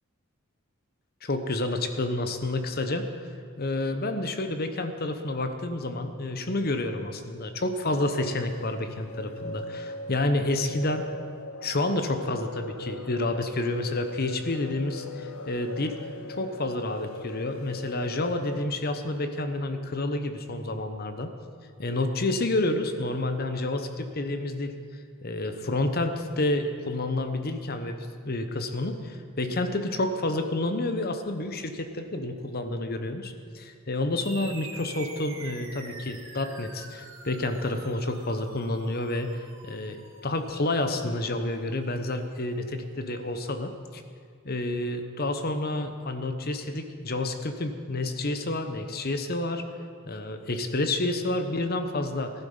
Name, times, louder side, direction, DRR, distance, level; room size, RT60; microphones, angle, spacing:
voice 1, 1.2-3.1 3.6-11.0 11.6-16.0 16.3-21.3 21.8-24.7 25.2-28.0 28.2-44.0 44.4-49.6 50.0-52.3, left 2 dB, 45° left, 8 dB, 1.0 m, -29 dB
sound 1, 7.9-18.7, left 2 dB, 80° left, 0.8 m, -40 dB
sound 2, 34.2-43.1, right 3 dB, 70° right, 2.5 m, -47 dB
14.5 x 12.0 x 5.6 m, 2.1 s
head